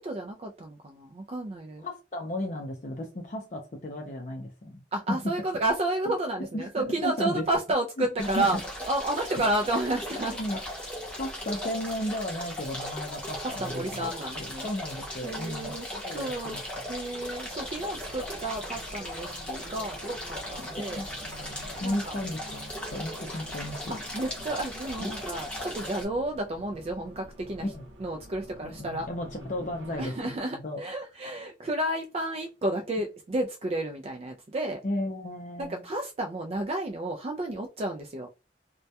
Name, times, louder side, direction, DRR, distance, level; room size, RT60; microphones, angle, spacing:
voice 1, 0.0-1.8 4.9-8.6 8.9-10.4 13.4-14.7 15.2-16.6 16.9-21.0 21.8-22.2 23.9-27.7 28.0-29.1 30.0-34.8 35.6-38.3, right 1 dB, 35° right, 0.3 m, -31 dB
voice 2, 1.8-4.8 5.1-5.2 6.5-7.5 8.0-8.6 10.4-10.6 11.2-14.1 14.6-16.9 20.6-21.1 21.8-23.9 25.0-25.1 27.6-27.9 28.6-30.8 34.8-35.8, left 1 dB, 40° left, 0.5 m, -34 dB
sound 1, 8.2-26.0, left 1 dB, 5° left, 0.7 m, -38 dB
Race car auto racing, 17.5-30.1, right 1 dB, 80° right, 0.8 m, -47 dB
2.2 x 2.1 x 2.7 m
head